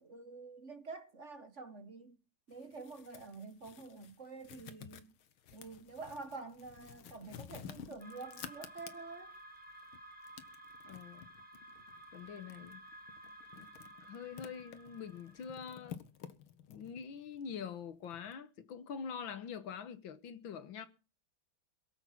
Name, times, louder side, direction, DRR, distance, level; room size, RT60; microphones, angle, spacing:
voice 1, 0.0-2.2 2.5-5.1 5.5-9.3, right 3 dB, 40° right, 1.3 m, -48 dB
sound 1, 2.5-9.4 9.8-18.3, left 9 dB, 90° left, 2.0 m, -53 dB
sound 2, 8.0-15.7, right 1 dB, 5° right, 1.8 m, -54 dB
voice 2, 10.9-11.3 12.1-12.8 14.0-16.0 16.7-20.9, left 7 dB, 75° left, 1.9 m, -45 dB
22.5 x 7.9 x 5.8 m
omnidirectional pair, 2.2 m